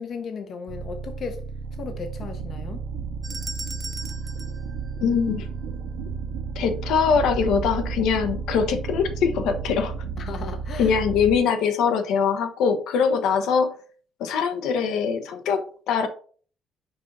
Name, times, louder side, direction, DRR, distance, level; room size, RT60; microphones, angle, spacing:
voice 1, 0.0-1.4 1.8-2.8 10.2-11.0, left 5 dB, 40° left, 0.7 m, -35 dB
sound 1, 0.7-11.4, right 4 dB, 45° right, 0.9 m, -33 dB
sound 2, 1.6-10.6, right 10 dB, 75° right, 0.4 m, -38 dB
sound 3, 3.2-5.6, right 2 dB, 15° right, 0.5 m, -39 dB
voice 2, 5.0-5.5 6.5-9.9 10.8-13.7 14.2-16.1, left 6 dB, 75° left, 1.0 m, -22 dB
5.3 x 5.2 x 4.0 m
cardioid pair, 175°, 0 cm